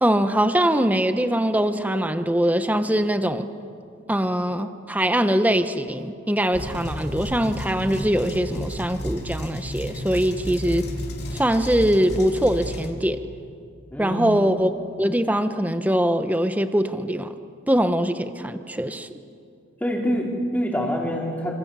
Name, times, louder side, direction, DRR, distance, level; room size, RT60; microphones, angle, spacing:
voice 1, 0.0-3.5 4.1-10.9 11.3-13.2 14.0-14.7 15.0-17.3 17.7-19.2, equal, 10° right, 9 dB, 0.9 m, -22 dB
sound 1, 6.5-12.9, equal, 55° left, 3.6 m, -32 dB
voice 2, 13.9-14.2 19.8-21.5, equal, 10° left, -2 dB, 4.6 m, -25 dB
29.0 x 26.5 x 7.5 m, 2.4 s
head